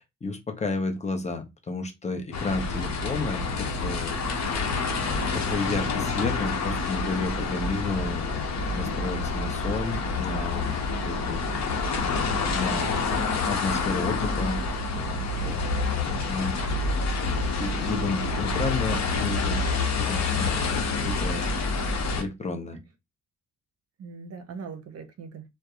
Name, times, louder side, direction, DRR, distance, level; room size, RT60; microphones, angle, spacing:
voice 1, 0.2-4.1 5.3-10.8 11.0-11.5 12.0-12.9 13.5-14.6 14.9-15.6 16.1-16.6 17.3-19.7 20.0-21.6 22.1-22.8, left 3 dB, 25° left, 0.7 m, -32 dB
sound 1, 2.3-22.2, left 3 dB, 60° left, 0.9 m, -28 dB
voice 2, 17.6-18.1 21.5-21.6 24.0-25.4, right 5 dB, 55° right, 0.6 m, -40 dB
2.6 x 2.1 x 2.3 m
cardioid pair, 90°, 30 cm